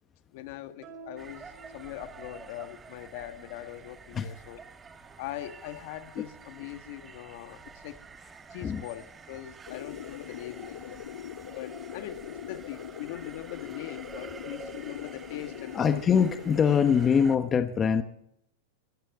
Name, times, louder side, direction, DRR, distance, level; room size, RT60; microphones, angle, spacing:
voice 1, 0.3-4.6 5.2-8.0 8.5-11.0 11.5-16.2, left 13 dB, 55° left, 9 dB, 1.6 m, -41 dB
sound 1, 0.8-2.6, right 3 dB, 35° right, 5.0 m, -50 dB
sound 2, 1.2-17.4, right 5 dB, 15° right, 1.3 m, -48 dB
sound 3, 9.7-17.2, left 11 dB, 80° left, 0.5 m, -42 dB
voice 2, 15.7-18.0, left 7 dB, 20° left, 9 dB, 1.0 m, -23 dB
22.5 x 16.0 x 3.6 m, 0.73 s
supercardioid pair, 145°, 0 cm